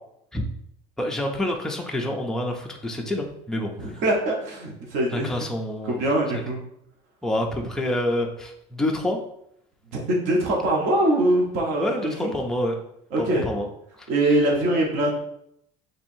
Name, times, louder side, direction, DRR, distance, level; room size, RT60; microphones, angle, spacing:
voice 1, 1.0-3.7 5.1-6.0 7.2-9.2 11.8-12.8 13.2-13.7, left 1 dB, 5° left, 1 dB, 0.4 m, -27 dB
voice 2, 3.8-5.3 5.8-6.6 9.9-12.3 13.1-13.5 14.1-15.2, right 1 dB, 55° right, -2 dB, 1.0 m, -23 dB
4.4 x 3.2 x 2.6 m, 0.73 s
cardioid pair, 170°, 14 cm